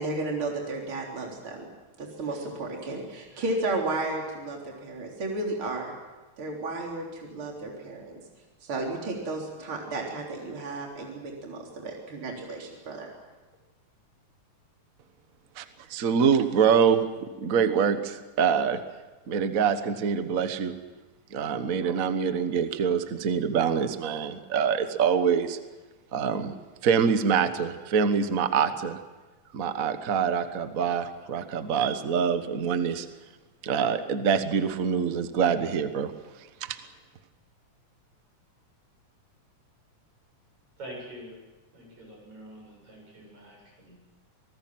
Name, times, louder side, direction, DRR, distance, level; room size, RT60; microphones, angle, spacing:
voice 1, 0.0-1.7 2.0-5.9 6.4-8.2 8.6-13.1, right 2 dB, 40° right, -1 dB, 4.4 m, -33 dB
voice 2, 15.9-18.8 19.3-20.8 21.3-25.6 26.1-26.5 26.8-29.0 29.5-33.1 33.6-36.1 36.6-36.8, right 7 dB, 80° right, 9 dB, 0.7 m, -25 dB
voice 3, 40.8-41.4 41.7-44.0, right 1 dB, 60° right, 0 dB, 9.4 m, -45 dB
26.5 x 19.5 x 7.6 m, 1.2 s
omnidirectional pair, 3.6 m